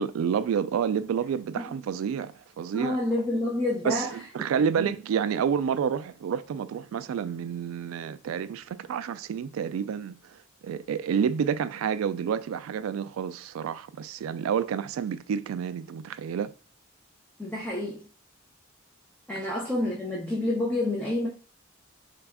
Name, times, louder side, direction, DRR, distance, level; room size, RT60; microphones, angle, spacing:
voice 1, 0.0-3.0 3.8-16.5 19.3-19.4, right 7 dB, 90° right, 0.3 m, -29 dB
voice 2, 2.7-4.1 4.8-4.9 17.4-18.0 19.3-21.3, left 1 dB, 5° left, 0.7 m, -28 dB
4.1 x 2.3 x 3.4 m
head